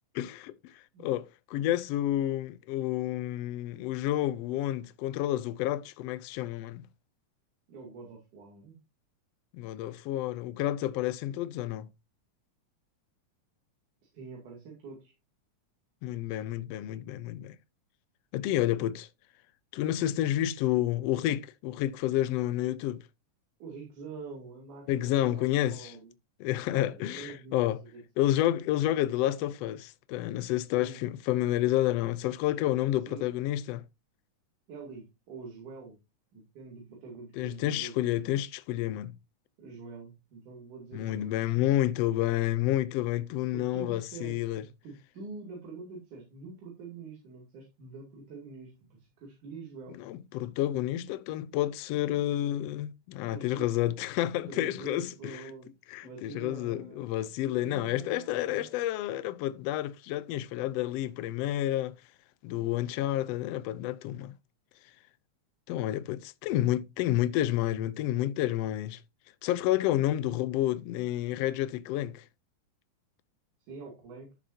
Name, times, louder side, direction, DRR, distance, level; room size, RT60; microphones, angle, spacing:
voice 1, 0.1-6.8 9.5-11.9 16.0-17.6 18.3-19.1 19.7-23.0 24.9-25.9 26.4-27.8 28.2-33.8 37.3-39.1 40.9-44.6 50.0-55.4 55.9-61.9 62.4-64.3 65.7-69.0 69.4-72.2, left 14 dB, 85° left, 1.4 m, -30 dB
voice 2, 7.7-8.8 14.0-15.1 23.6-26.1 26.7-28.0 30.7-31.0 33.1-33.3 34.7-36.0 36.3-38.0 39.6-41.3 43.5-50.0 53.3-53.7 54.5-55.7 56.0-58.7 73.7-74.3, right 4 dB, 80° right, 4.1 m, -45 dB
14.0 x 7.0 x 2.7 m
omnidirectional pair, 3.5 m